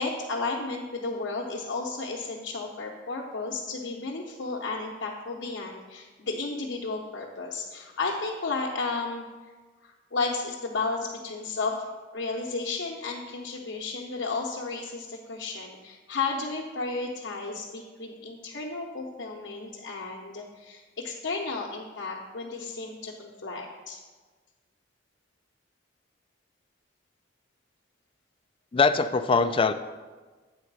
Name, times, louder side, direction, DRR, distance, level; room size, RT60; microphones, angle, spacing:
voice 1, 0.0-9.3 9.8-11.8 12.1-24.0, left 3 dB, 80° left, -3 dB, 0.9 m, -33 dB
voice 2, 28.7-29.7, left 4 dB, 30° left, 10 dB, 0.3 m, -22 dB
8.5 x 4.0 x 6.1 m, 1.3 s
head